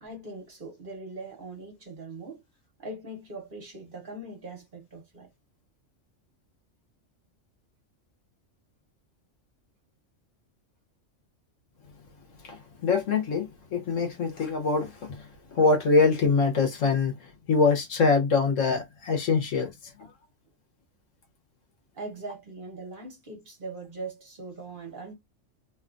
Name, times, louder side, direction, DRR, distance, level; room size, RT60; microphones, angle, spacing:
voice 1, 0.0-2.4 2.8-5.3 21.9-25.1, right 2 dB, 45° right, 1.1 m, -41 dB
voice 2, 12.4-20.1, left 4 dB, 75° left, 1.3 m, -24 dB
2.9 x 2.4 x 2.4 m
omnidirectional pair, 1.3 m